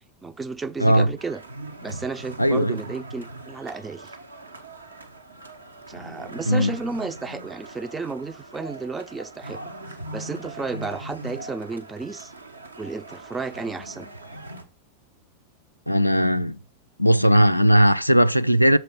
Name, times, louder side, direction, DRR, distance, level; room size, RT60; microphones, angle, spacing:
voice 1, 0.2-1.4 1.8-4.2 5.9-9.6 9.9-12.3 12.8-14.1, right 4 dB, 15° right, 0.5 m, -33 dB
sound 1, 1.2-14.6, right 2 dB, 80° right, 0.9 m, -40 dB
voice 2, 2.4-2.8 6.5-6.7 15.9-16.6 17.0-18.8, equal, 90° left, 0.3 m, -18 dB
6.7 x 4.6 x 5.3 m
figure-of-eight pair, 90°, 0 cm